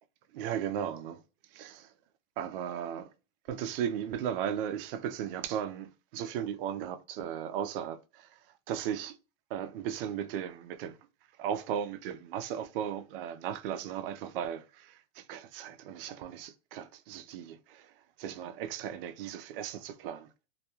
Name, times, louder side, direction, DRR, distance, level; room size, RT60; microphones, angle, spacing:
voice 1, 0.3-1.2 1.5-1.9 2.4-3.1 3.5-8.4 8.7-9.2 9.5-11.0 11.4-17.9 18.2-20.3, right 9 dB, 45° right, 0.4 m, -36 dB
2.3 x 2.1 x 2.9 m
hypercardioid pair, 135°, 40 cm